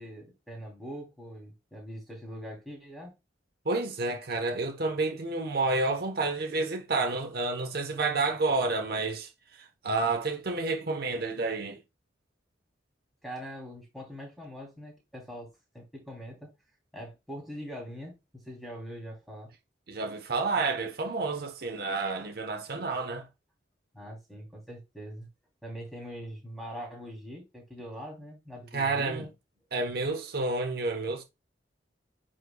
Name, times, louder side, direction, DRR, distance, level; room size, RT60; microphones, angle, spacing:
voice 1, 0.0-3.1 13.2-16.5 16.9-19.5 23.9-25.3 25.6-29.3, equal, ahead, 3.0 m, -42 dB
voice 2, 3.6-11.8 19.9-23.3 28.7-29.3 29.7-31.2, right 3 dB, 55° right, 1.0 m, -30 dB
9.5 x 4.4 x 2.2 m
head